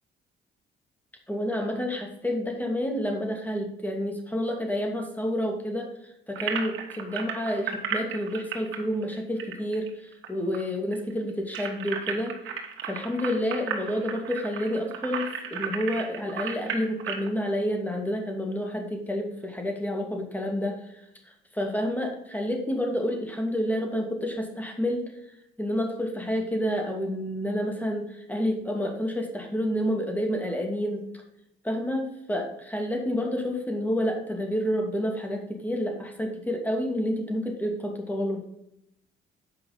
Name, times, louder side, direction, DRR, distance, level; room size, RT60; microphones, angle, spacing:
voice 1, 1.3-12.4 12.8-25.1 25.6-31.0 31.6-38.4, equal, 10° left, 2 dB, 2.4 m, -29 dB
sound 1, 6.4-10.3 10.5-10.6 10.9-17.3, right 7 dB, 80° right, 1.7 m, -34 dB
8.4 x 5.6 x 5.4 m, 0.82 s
cardioid pair, 90°, 20 cm